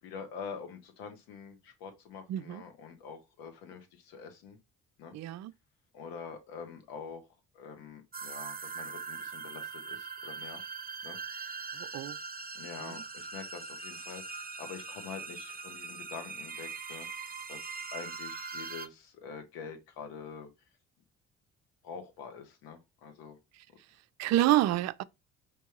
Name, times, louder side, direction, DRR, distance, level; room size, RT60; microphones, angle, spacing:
voice 1, 0.0-4.6 5.0-5.1 5.9-7.3 7.5-10.6 11.0-11.2 12.5-20.5 21.8-23.4, left 6 dB, 75° left, 1.4 m, -46 dB
voice 2, 2.3-2.6 5.1-5.5 11.8-12.2 24.2-25.0, right 14 dB, 45° right, 0.4 m, -28 dB
sound 1, 8.1-18.9, right 4 dB, 25° right, 0.9 m, -41 dB
5.2 x 3.4 x 3.0 m
hypercardioid pair, 50°, 37 cm